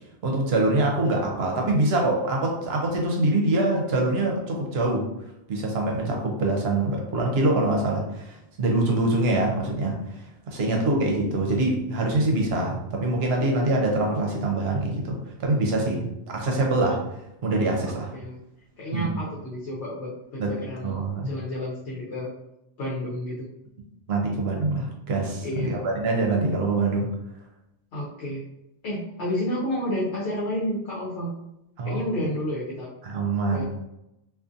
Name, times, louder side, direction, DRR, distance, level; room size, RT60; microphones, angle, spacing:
voice 1, 0.2-5.1 5.5-17.0 17.4-18.1 18.9-19.2 20.4-20.6 20.8-21.3 24.1-27.1 31.8-32.0 33.0-33.6, right 2 dB, 70° right, 0 dB, 0.9 m, -24 dB
voice 2, 17.9-18.4 18.8-21.0 21.2-22.3 22.8-23.5 25.4-25.8 27.9-28.4 28.8-31.3 31.8-32.9 33.5-33.6, equal, 75° left, -5 dB, 0.9 m, -30 dB
2.5 x 2.5 x 2.5 m, 0.86 s
omnidirectional pair, 1.1 m